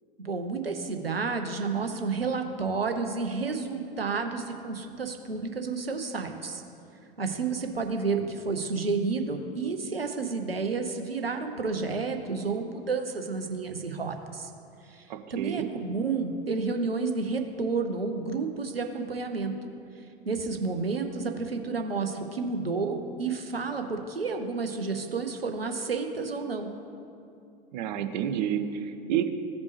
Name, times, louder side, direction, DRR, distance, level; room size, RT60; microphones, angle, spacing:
voice 1, 0.2-6.6 7.2-14.5 14.9-15.0 15.3-19.5 20.3-26.7, right 4 dB, 85° right, 5 dB, 0.8 m, -30 dB
voice 2, 15.1-15.7 27.7-29.4, right 9 dB, 50° right, 8 dB, 0.7 m, -29 dB
15.5 x 5.2 x 3.2 m, 2.5 s
figure-of-eight pair, 85°, 29 cm